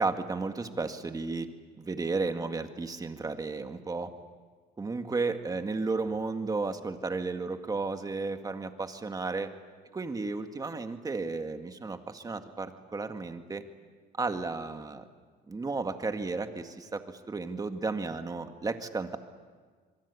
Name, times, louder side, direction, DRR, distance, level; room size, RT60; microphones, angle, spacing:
voice 1, 0.0-1.5 1.8-4.1 4.8-9.5 9.9-13.6 14.2-15.0 15.5-19.2, right 3 dB, 20° right, 6 dB, 2.0 m, -33 dB
25.5 x 23.0 x 8.6 m, 1.5 s
cardioid pair, 110°, 17 cm